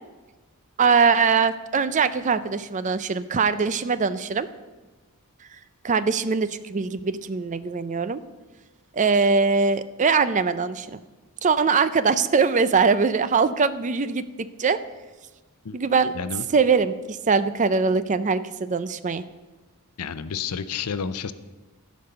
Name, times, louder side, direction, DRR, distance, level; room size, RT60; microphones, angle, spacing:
voice 1, 0.8-4.5 5.8-8.2 8.9-11.0 11.4-14.2 14.6-14.8 15.7-16.1 16.5-19.2, right 5 dB, 35° right, 14 dB, 0.5 m, -22 dB
voice 2, 16.1-16.5 20.0-21.3, left 6 dB, 85° left, 13 dB, 0.6 m, -30 dB
15.5 x 5.3 x 6.7 m, 1.2 s
head